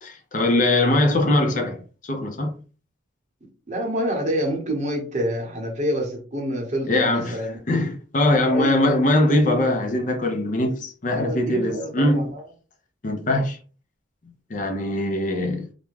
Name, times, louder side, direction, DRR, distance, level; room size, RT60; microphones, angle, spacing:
voice 1, 0.0-2.5 6.9-7.4 7.7-12.2 13.0-13.6 14.5-15.6, left 1 dB, 40° left, 0.5 m, -21 dB
voice 2, 3.7-7.6 8.3-8.8 11.1-12.5, equal, 35° right, 0.8 m, -27 dB
2.5 x 2.2 x 3.1 m
head